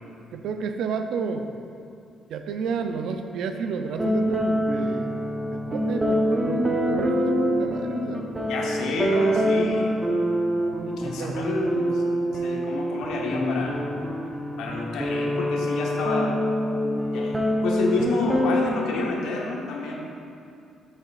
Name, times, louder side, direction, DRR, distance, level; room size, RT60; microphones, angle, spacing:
voice 1, 0.3-1.5 2.3-5.2 5.5-7.3 7.6-8.3 11.0-11.5, right 5 dB, 80° right, 7 dB, 0.5 m, -31 dB
sound 1, 4.0-19.1, equal, 20° right, 0.9 m, -25 dB
voice 2, 8.5-9.9 10.8-13.8 14.6-16.4 17.1-20.0, left 3 dB, 90° left, -1 dB, 1.0 m, -29 dB
8.3 x 7.1 x 2.5 m, 2.5 s
cardioid pair, 90°, 0 cm